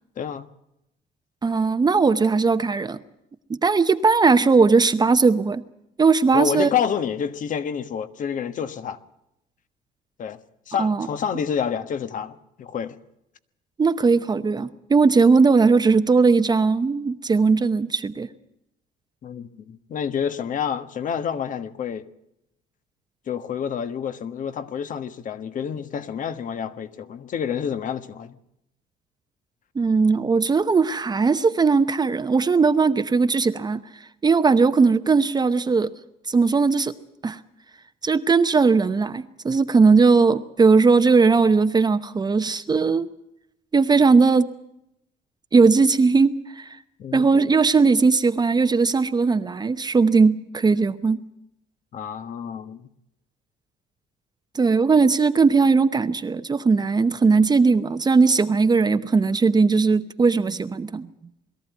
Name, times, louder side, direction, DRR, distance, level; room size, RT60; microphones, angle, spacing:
voice 1, 0.2-0.5 6.3-9.0 10.2-10.4 10.7-13.0 19.2-22.0 23.3-28.4 47.0-47.3 51.9-52.9, left 7 dB, 50° left, 1.4 m, -28 dB
voice 2, 1.4-3.0 3.5-5.6 6.0-6.7 10.8-11.1 13.8-18.3 29.8-33.8 34.2-35.9 36.3-36.9 37.2-37.4 38.0-43.1 43.7-44.5 45.5-46.8 47.1-51.2 54.5-61.1, right 4 dB, 25° right, 0.8 m, -18 dB
21.5 x 14.0 x 9.3 m
cardioid pair, 110°, 17 cm